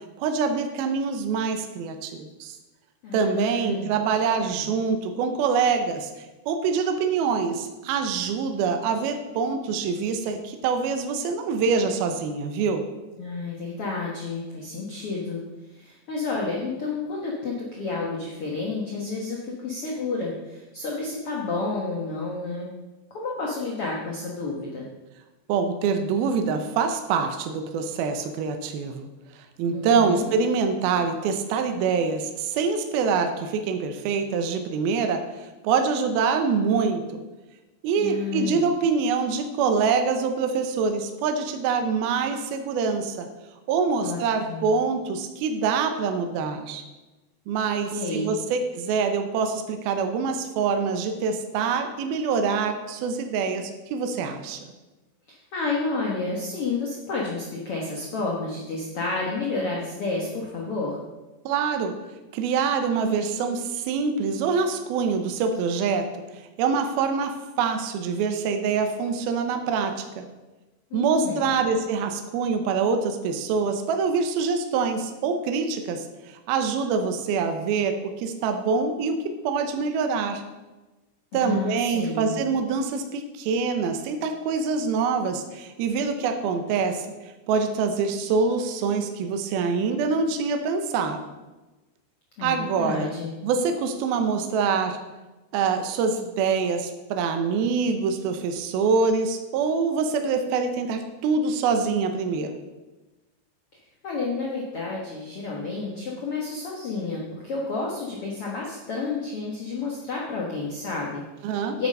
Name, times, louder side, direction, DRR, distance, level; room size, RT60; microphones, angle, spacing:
voice 1, 0.2-2.6 3.1-12.8 25.5-29.1 29.6-37.0 37.8-43.3 43.7-46.8 47.5-54.6 61.5-61.9 62.3-66.1 66.3-70.2 70.9-79.2 79.4-80.4 81.3-87.1 87.5-91.2 92.4-93.1 93.4-95.0 95.5-102.5 111.4-111.8, right 5 dB, 75° right, 6 dB, 2.5 m, -25 dB
voice 2, 3.0-3.9 4.3-4.7 13.2-15.4 15.7-22.7 23.1-24.9 29.7-30.3 38.0-38.6 44.0-44.2 44.5-44.6 47.9-48.3 55.3-61.0 70.9-71.6 81.3-82.4 92.4-93.3 104.0-111.9, left 3 dB, 85° left, -2 dB, 1.2 m, -30 dB
9.0 x 8.8 x 5.4 m, 1.1 s
omnidirectional pair, 4.9 m